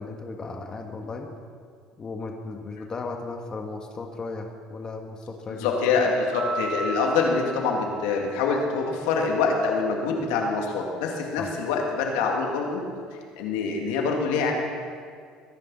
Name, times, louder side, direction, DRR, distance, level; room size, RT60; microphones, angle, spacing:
voice 1, 0.0-1.3 2.0-5.7 11.4-11.5, left 3 dB, 30° left, 3 dB, 1.8 m, -35 dB
voice 2, 5.6-12.9 13.4-14.5, left 4 dB, 80° left, 1 dB, 2.7 m, -25 dB
sound 1, 6.3-8.8, right 3 dB, 75° right, 3.0 m, -34 dB
23.0 x 11.0 x 4.3 m, 2.1 s
hypercardioid pair, 75°, 2 cm